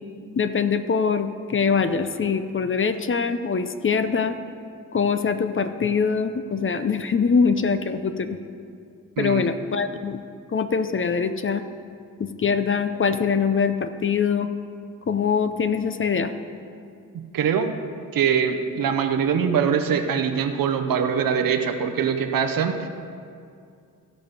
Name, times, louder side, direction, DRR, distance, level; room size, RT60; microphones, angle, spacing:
voice 1, 0.4-4.4 4.9-8.4 9.2-10.2 10.5-11.6 12.2-14.5 15.1-16.3, left 5 dB, 40° left, 10 dB, 0.6 m, -23 dB
voice 2, 9.2-9.5 17.3-17.7 18.1-22.9, right 7 dB, 85° right, 7 dB, 0.8 m, -23 dB
15.0 x 5.3 x 5.3 m, 2.4 s
cardioid pair, 80°, 33 cm